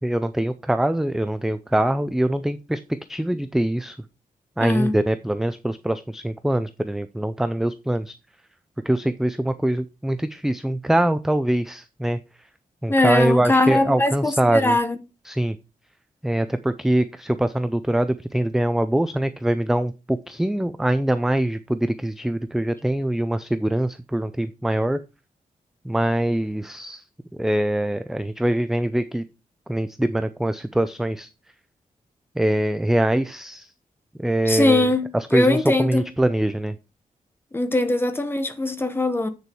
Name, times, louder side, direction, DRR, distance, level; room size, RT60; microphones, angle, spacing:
voice 1, 0.0-2.8 3.1-4.0 4.6-8.1 8.8-12.2 12.8-14.8 15.2-15.6 16.2-25.0 25.8-27.0 27.3-29.2 29.7-31.3 32.4-33.7 34.2-34.9 35.1-36.8, right 1 dB, 5° right, 0.4 m, -23 dB
voice 2, 4.6-5.0 12.9-15.0 34.5-35.1 35.3-36.1 37.5-39.3, left 2 dB, 15° left, 1.0 m, -21 dB
8.0 x 6.8 x 4.5 m
wide cardioid pair, 155°, 14 cm